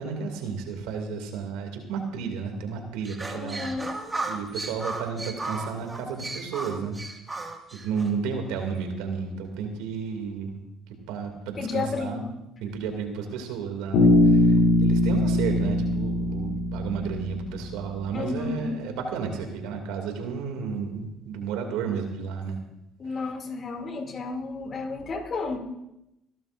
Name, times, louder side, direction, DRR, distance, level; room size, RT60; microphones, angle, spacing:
voice 1, 0.0-3.7 4.3-7.0 7.7-10.6 10.9-12.2 12.6-22.6, right 6 dB, 75° right, 4 dB, 2.5 m, -32 dB
sound 1, 3.0-8.1, right 2 dB, 20° right, 2.0 m, -35 dB
voice 2, 3.3-3.9 11.6-12.3 18.1-18.8 23.0-25.6, left 4 dB, 45° left, 4 dB, 2.6 m, -32 dB
Bass guitar, 13.9-17.8, left 1 dB, 75° left, 3.1 m, -21 dB
23.5 x 12.5 x 2.6 m, 0.88 s
hypercardioid pair, 70°, 0 cm